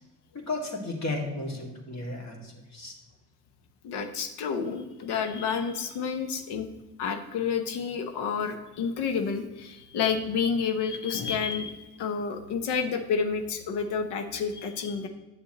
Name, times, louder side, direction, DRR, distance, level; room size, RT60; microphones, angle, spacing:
voice 1, 0.3-2.9, left 2 dB, 40° left, 1 dB, 2.2 m, -34 dB
voice 2, 3.8-6.7 7.0-15.1, left 6 dB, 75° left, 7 dB, 1.0 m, -30 dB
9.3 x 6.9 x 3.0 m, 1.1 s
supercardioid pair, 55°, 40 cm